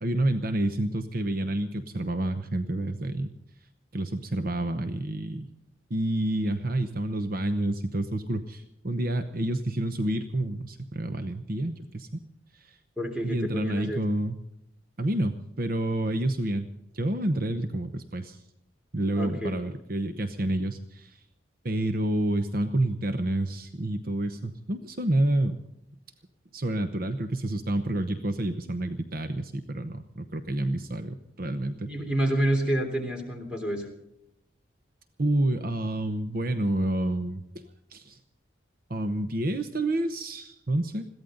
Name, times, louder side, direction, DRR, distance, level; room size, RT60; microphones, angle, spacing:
voice 1, 0.0-3.3 3.9-5.5 5.9-12.2 12.5-12.8 13.2-14.3 15.0-16.7 16.9-18.4 18.9-21.2 21.6-25.6 26.5-31.9 35.2-37.6 37.9-38.2 38.9-41.1, right 1 dB, 45° right, 9 dB, 0.9 m, -29 dB
voice 2, 13.0-14.0 19.1-19.5 31.7-33.9, right 1 dB, 5° right, 3 dB, 3.4 m, -28 dB
21.5 x 15.5 x 3.9 m, 0.83 s
head